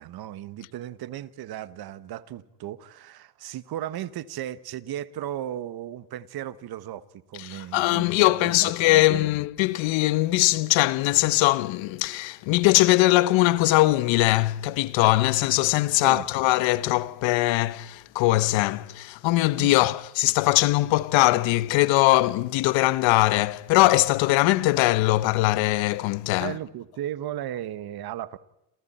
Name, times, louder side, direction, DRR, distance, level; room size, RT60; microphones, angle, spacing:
voice 1, 0.0-9.1 16.0-16.3 19.6-19.8 26.4-28.4, right 12 dB, 55° right, 1.4 m, -36 dB
voice 2, 7.4-26.5, left 18 dB, 80° left, 1.1 m, -21 dB
28.0 x 28.0 x 4.3 m
cardioid pair, 140°, 45 cm